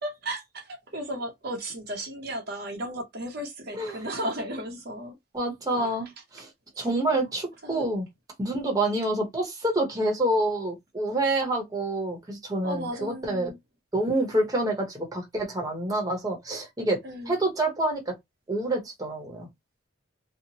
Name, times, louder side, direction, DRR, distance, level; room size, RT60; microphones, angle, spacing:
voice 1, 0.0-5.1 5.7-6.0 6.8-7.1 7.6-7.9 12.6-13.6 17.0-17.4, right 1 dB, 50° right, 0.7 m, -35 dB
voice 2, 5.3-6.5 6.8-8.1 8.4-13.5 13.9-17.0 17.3-18.1 18.5-19.5, right 1 dB, 20° right, 0.8 m, -27 dB
2.7 x 2.0 x 2.8 m
head